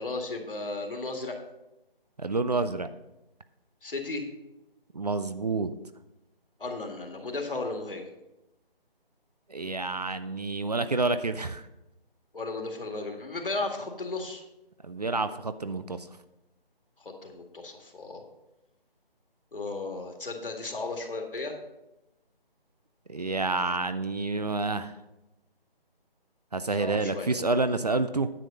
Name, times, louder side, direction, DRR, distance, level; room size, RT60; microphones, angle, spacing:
voice 1, 0.0-1.4 3.8-4.2 6.6-8.0 12.3-14.4 17.0-18.2 19.5-21.6 26.8-27.3, left 3 dB, 65° left, 3 dB, 2.0 m, -35 dB
voice 2, 2.2-2.9 4.9-5.7 9.5-11.7 14.8-16.1 23.1-25.0 26.5-28.3, right 3 dB, 45° right, 12 dB, 0.5 m, -28 dB
9.9 x 6.5 x 5.3 m, 0.94 s
figure-of-eight pair, 155°, 30 cm